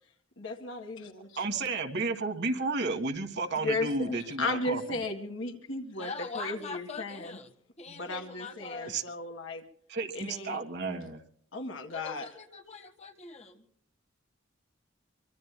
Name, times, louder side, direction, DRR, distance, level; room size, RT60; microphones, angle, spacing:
voice 1, 0.4-1.4 3.6-7.4 7.9-9.6 10.1-10.6 10.9-11.0 11.5-12.3, left 2 dB, 75° left, 5 dB, 1.8 m, -35 dB
voice 2, 1.4-5.0 8.9-9.0 9.9-11.2, right 3 dB, 60° right, 4 dB, 1.8 m, -32 dB
voice 3, 5.9-7.5 7.8-8.9 11.9-13.6, left 4 dB, 35° left, 4 dB, 1.5 m, -42 dB
24.0 x 24.0 x 2.2 m, 0.62 s
head